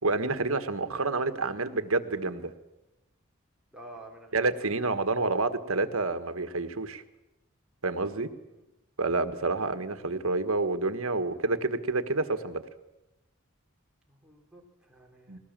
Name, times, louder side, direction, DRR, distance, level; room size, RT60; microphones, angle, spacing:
voice 1, 0.0-2.5 4.3-7.0 7.8-8.3 9.0-12.6 15.3-15.4, right 3 dB, 75° right, 10 dB, 1.5 m, -28 dB
voice 2, 3.7-4.7 8.4-8.7 14.1-15.4, right 1 dB, 5° right, -2 dB, 3.7 m, -50 dB
20.5 x 19.0 x 7.5 m, 0.97 s
head